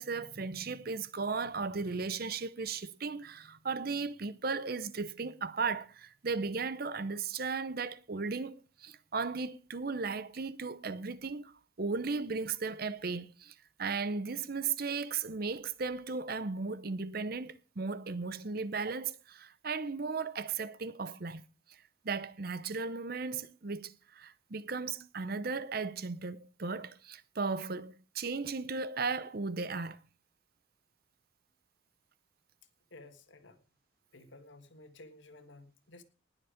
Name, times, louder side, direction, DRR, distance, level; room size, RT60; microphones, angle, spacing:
voice 1, 0.0-21.4 21.7-30.0, right 4 dB, 50° right, 0.7 m, -36 dB
voice 2, 32.9-33.6 34.1-36.0, left 2 dB, 70° left, 1.6 m, -54 dB
19.5 x 7.1 x 5.0 m
head